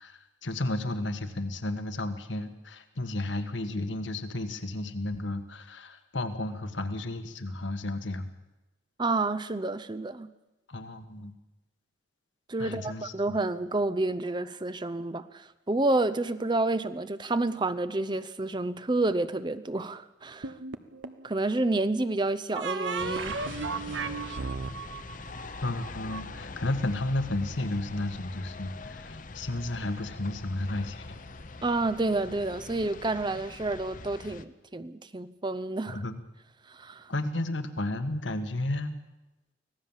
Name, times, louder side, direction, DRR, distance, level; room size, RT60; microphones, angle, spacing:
voice 1, 0.0-8.3 10.7-11.3 12.6-13.4 25.6-31.0 35.9-36.2 37.1-39.0, left 2 dB, 85° left, 1.8 m, -33 dB
voice 2, 9.0-10.3 12.5-20.5 21.2-23.4 31.6-36.0 36.7-37.1, right 2 dB, 25° right, 0.7 m, -29 dB
sound 1, 20.4-21.3 22.6-26.2, right 4 dB, 80° right, 1.1 m, -35 dB
sound 2, 23.0-34.4, left 3 dB, 45° left, 0.9 m, -43 dB
25.0 x 17.0 x 7.4 m
head